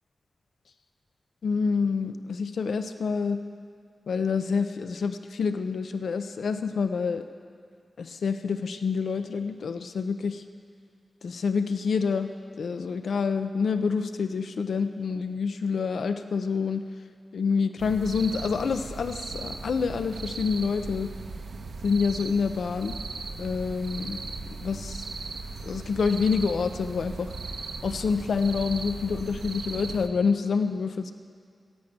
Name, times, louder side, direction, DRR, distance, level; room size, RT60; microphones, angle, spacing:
voice 1, 1.4-3.4 4.1-7.2 8.0-10.4 11.2-12.3 12.6-16.8 17.3-21.1 21.8-23.0 23.4-24.2 24.5-25.1 25.6-27.3 27.8-31.1, left 5 dB, 90° left, 9 dB, 0.7 m, -27 dB
sound 1, 17.8-30.1, right 4 dB, 85° right, 0.9 m, -38 dB
14.5 x 10.5 x 8.8 m, 2.2 s
wide cardioid pair, 160°, 0 cm